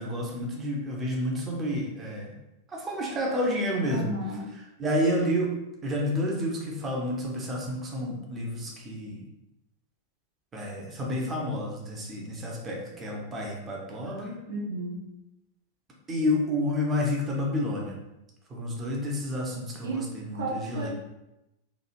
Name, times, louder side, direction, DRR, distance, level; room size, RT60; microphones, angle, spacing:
voice 1, 0.0-2.3 2.7-4.1 4.8-5.5 5.8-9.2 10.5-14.4 16.1-18.0 18.5-20.9, left 1 dB, 20° right, -2 dB, 0.6 m, -30 dB
voice 2, 3.9-4.5 14.5-15.0 19.8-20.9, right 2 dB, 65° right, -2 dB, 0.6 m, -33 dB
2.9 x 2.4 x 2.5 m, 0.92 s
figure-of-eight pair, 90°, 0 cm